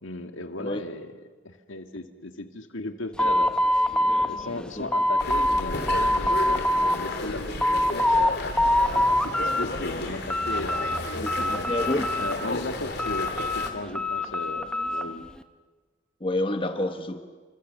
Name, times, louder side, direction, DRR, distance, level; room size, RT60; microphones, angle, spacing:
voice 1, 0.0-3.5 4.0-7.4 7.7-11.7 12.2-15.3, left 2 dB, 75° left, 7 dB, 1.9 m, -36 dB
sound 1, 3.2-5.6 5.9-7.0 7.3-8.3 8.6-9.6 10.0-11.0 11.3-12.5 13.0-15.1, left 1 dB, 5° left, 0.9 m, -24 dB
sound 2, 5.2-13.7, left 2 dB, 50° left, 3.2 m, -33 dB
voice 2, 11.2-12.1 16.2-17.2, left 1 dB, 25° left, 7 dB, 1.2 m, -28 dB
29.5 x 26.0 x 6.7 m, 1.4 s
head